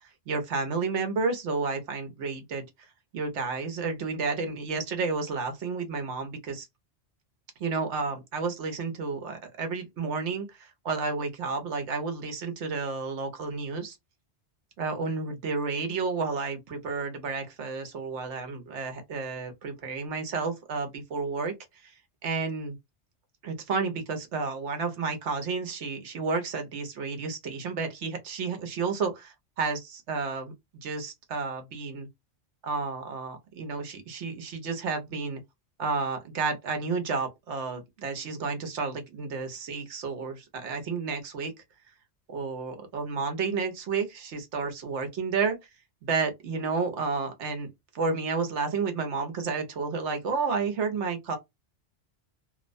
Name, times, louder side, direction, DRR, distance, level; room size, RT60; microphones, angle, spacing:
voice 1, 0.0-2.6 3.1-6.7 7.6-14.0 14.8-21.5 21.8-21.9 22.2-22.8 23.4-32.1 32.6-35.4 35.8-41.5 42.3-45.6 46.0-51.4, right 4 dB, 80° right, 1.1 m, -31 dB
2.8 x 2.1 x 2.5 m
omnidirectional pair, 1.2 m